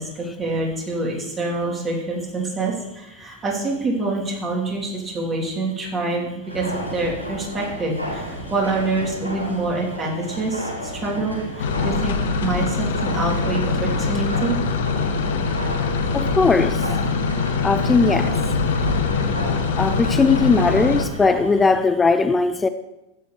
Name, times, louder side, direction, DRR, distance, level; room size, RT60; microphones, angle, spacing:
voice 1, 0.0-6.7 6.9-14.6, right 2 dB, 25° right, -2 dB, 2.9 m, -26 dB
sound 1, 6.4-21.7, equal, 90° left, 2.4 m, -33 dB
sound 2, 11.6-21.0, left 4 dB, 60° left, 1.0 m, -23 dB
voice 2, 16.1-16.8 17.6-18.3 19.8-22.7, left 4 dB, 15° left, 11 dB, 0.4 m, -18 dB
13.5 x 9.0 x 3.2 m, 0.95 s
figure-of-eight pair, 90°, 0 cm